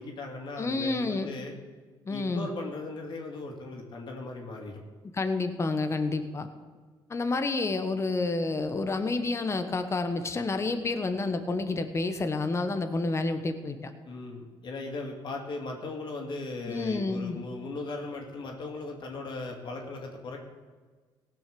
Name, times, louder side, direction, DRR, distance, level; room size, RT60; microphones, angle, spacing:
voice 1, 0.0-1.5 2.1-4.8 14.0-20.4, left 3 dB, 55° left, 1 dB, 2.7 m, -38 dB
voice 2, 0.6-1.3 2.1-2.5 5.1-6.5 7.1-13.9 16.7-17.4, left 3 dB, 30° left, 8 dB, 1.1 m, -29 dB
17.5 x 6.2 x 6.9 m, 1.4 s
cardioid pair, 85°, 10 cm